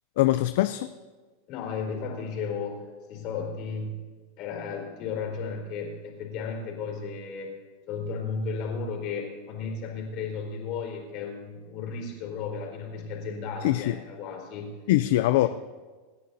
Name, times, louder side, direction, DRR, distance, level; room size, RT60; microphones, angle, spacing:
voice 1, 0.2-0.9 13.6-14.0 14.9-15.5, left 15 dB, 70° left, 11 dB, 0.4 m, -22 dB
voice 2, 1.5-2.8 3.1-4.0 4.4-7.5 7.9-14.7 15.4-15.5, left 5 dB, 50° left, 1 dB, 4.1 m, -34 dB
27.0 x 9.6 x 2.7 m, 1.4 s
hypercardioid pair, 120°, 0 cm